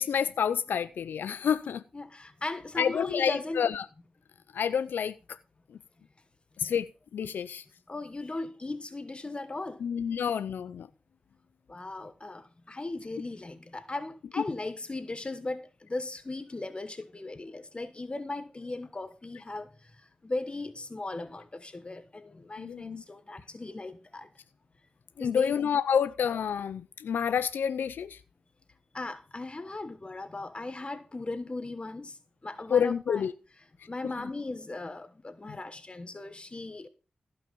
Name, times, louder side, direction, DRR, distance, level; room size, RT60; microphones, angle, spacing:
voice 1, 0.0-1.8 2.8-3.8 4.5-5.4 6.6-7.6 9.8-10.9 22.6-23.0 25.2-28.2 32.7-33.3, left 7 dB, 90° left, 0.5 m, -28 dB
voice 2, 1.9-3.7 6.6-6.7 7.9-9.8 11.7-19.9 20.2-24.3 25.2-25.5 28.9-32.2 32.4-33.2 33.9-36.9, left 2 dB, 30° left, 1.1 m, -37 dB
15.5 x 5.8 x 5.3 m
cardioid pair, 60°, 3 cm